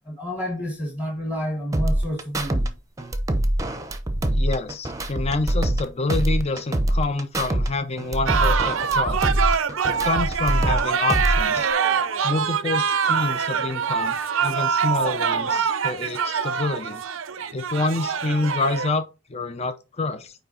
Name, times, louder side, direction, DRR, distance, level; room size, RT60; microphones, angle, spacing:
voice 1, 0.0-2.7, equal, 15° left, 1.3 m, -30 dB
sound 1, 1.7-2.7 3.0-5.8 6.1-7.7 8.0-10.8 11.1-11.7, right 1 dB, 15° right, 0.7 m, -24 dB
voice 2, 4.3-9.2 9.9-11.7 12.2-14.2 14.4-17.0 17.5-19.0 19.3-20.3, left 3 dB, 30° left, 0.5 m, -27 dB
sound 2, 8.3-18.9, right 6 dB, 75° right, 0.6 m, -24 dB
9.1 x 3.3 x 3.9 m
head